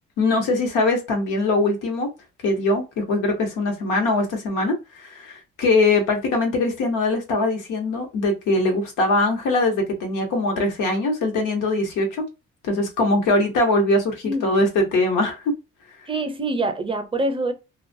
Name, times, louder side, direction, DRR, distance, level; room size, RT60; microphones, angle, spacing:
voice 1, 0.2-2.1 2.4-12.2 12.6-15.5, left 2 dB, 90° left, 1.0 m, -22 dB
voice 2, 14.2-14.7 16.1-17.5, right 2 dB, 20° right, 0.5 m, -25 dB
2.3 x 2.1 x 2.6 m
cardioid pair, 90°, 30 cm